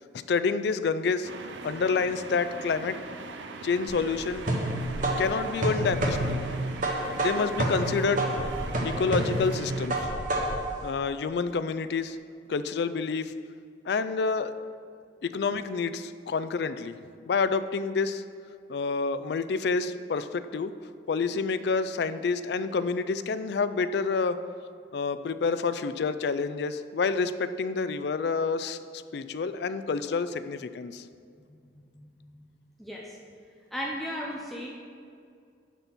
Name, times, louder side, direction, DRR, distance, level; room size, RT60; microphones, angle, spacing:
voice 1, 0.3-1.3 1.6-3.0 3.6-4.4 5.2-6.4 7.1-8.3 8.8-10.1 10.8-12.2 12.5-13.3 13.9-14.5 15.2-17.0 17.3-18.2 18.7-20.7 21.1-24.4 24.9-28.8 29.1-31.0, left 4 dB, 65° left, 12 dB, 0.4 m, -28 dB
sound 1, 1.2-9.9, right 3 dB, 85° right, 0.6 m, -41 dB
sound 2, 3.9-10.7, right 1 dB, 45° right, 1.0 m, -29 dB
voice 2, 31.7-32.4 32.8-33.2 33.7-34.7, equal, ahead, -3 dB, 0.6 m, -36 dB
10.0 x 4.2 x 6.0 m, 2.3 s
head